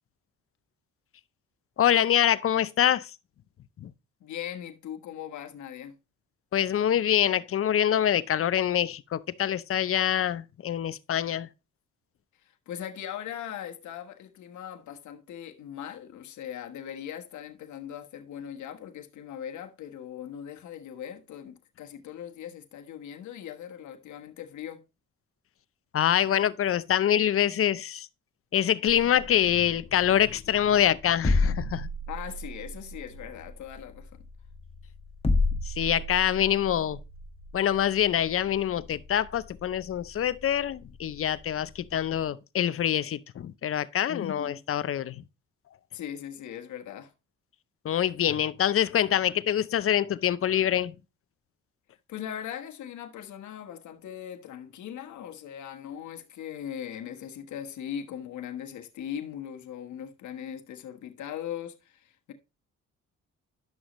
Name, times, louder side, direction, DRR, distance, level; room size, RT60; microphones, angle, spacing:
voice 1, 1.8-3.1 3.8-3.9 6.5-11.5 25.9-28.1 28.5-31.9 35.6-37.0 37.5-45.2 47.8-50.9, left 10 dB, 45° left, 0.6 m, -25 dB
voice 2, 4.2-6.0 12.4-24.8 32.1-34.2 44.1-44.7 45.9-47.1 52.1-62.3, left 9 dB, 70° left, 1.3 m, -39 dB
sound 1, 28.9-42.2, left 2 dB, 20° left, 1.6 m, -33 dB
10.5 x 6.2 x 3.0 m
cardioid pair, 90°, 30 cm